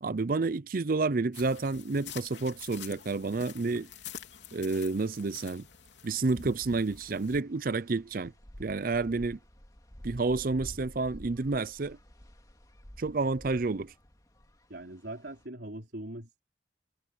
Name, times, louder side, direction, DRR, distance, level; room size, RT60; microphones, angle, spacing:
voice 1, 0.0-3.9 4.5-5.7 6.0-8.3 8.6-9.4 10.0-12.0 13.0-13.9, right 3 dB, 50° right, 0.6 m, -30 dB
sound 1, 1.3-7.4, left 7 dB, 90° left, 3.3 m, -47 dB
sound 2, 4.4-15.5, equal, 20° left, 2.4 m, -51 dB
voice 2, 14.7-16.4, right 1 dB, 70° right, 4.1 m, -41 dB
head